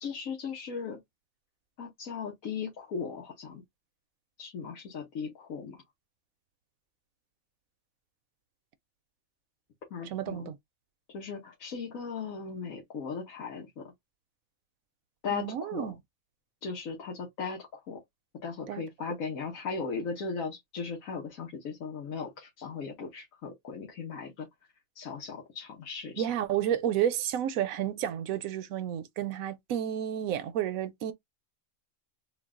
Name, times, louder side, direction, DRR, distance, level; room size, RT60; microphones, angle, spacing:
voice 1, 0.0-1.0 1.8-3.6 4.4-5.8 9.9-10.5 11.1-13.9 15.2-15.9 16.6-18.0 18.4-24.5 24.9-26.3, left 5 dB, 70° left, 1.4 m, -37 dB
voice 2, 10.0-10.6 15.3-16.0 18.7-18.8 26.2-31.1, right 10 dB, 75° right, 1.0 m, -31 dB
3.8 x 2.3 x 3.6 m
omnidirectional pair, 1.5 m